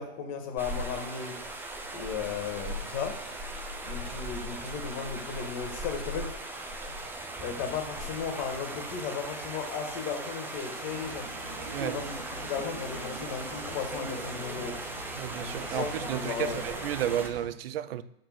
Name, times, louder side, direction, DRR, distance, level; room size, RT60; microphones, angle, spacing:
voice 1, 0.0-1.4 1.9-3.2 3.8-6.3 7.4-11.3 11.8-14.8 15.4-16.6, left 6 dB, 40° left, 1.7 m, -35 dB
sound 1, 0.6-17.3, right 1 dB, 5° right, 0.6 m, -39 dB
sound 2, 10.8-17.5, right 2 dB, 75° right, 2.1 m, -42 dB
voice 2, 15.1-18.0, right 11 dB, 60° right, 0.6 m, -32 dB
6.5 x 4.1 x 6.0 m
hypercardioid pair, 115°, 34 cm